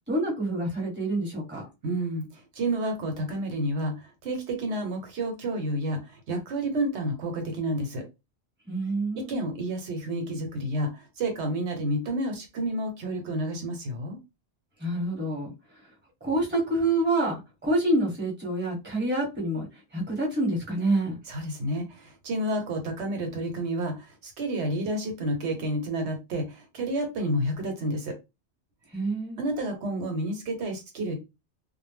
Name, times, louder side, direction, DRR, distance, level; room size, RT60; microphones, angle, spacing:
voice 1, 0.1-1.7 8.6-9.4 14.8-15.5 16.2-19.7 19.9-21.2 28.9-29.5, right 1 dB, 10° right, -3 dB, 1.0 m, -27 dB
voice 2, 1.8-8.0 9.1-14.2 21.3-28.1 29.4-31.1, right 1 dB, 80° right, 4 dB, 1.0 m, -30 dB
2.2 x 2.0 x 3.3 m, 0.25 s
omnidirectional pair, 1.2 m